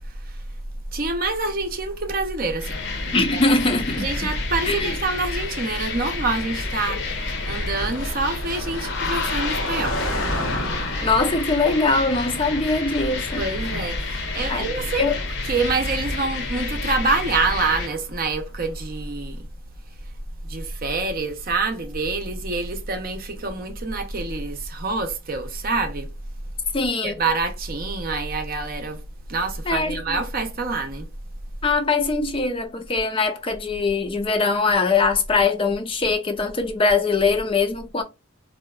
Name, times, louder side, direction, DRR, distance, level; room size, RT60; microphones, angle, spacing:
voice 1, 0.1-0.4 0.9-2.8 3.3-3.4 4.0-10.0 13.4-15.1 15.4-19.5 20.4-26.1 27.0-29.0 29.3-31.1, right 3 dB, 45° right, 0.6 m, -26 dB
Car passing by, 1.9-18.4, left 1 dB, 90° left, 0.8 m, -36 dB
sound 1, 2.6-17.9, left 3 dB, 60° left, 0.8 m, -29 dB
voice 2, 3.1-4.3 4.7-5.0 11.0-13.5 14.5-14.7 15.0-15.2 26.7-27.2 29.7-30.2 31.6-38.0, left 3 dB, 25° left, 0.5 m, -22 dB
4.1 x 2.8 x 2.3 m
head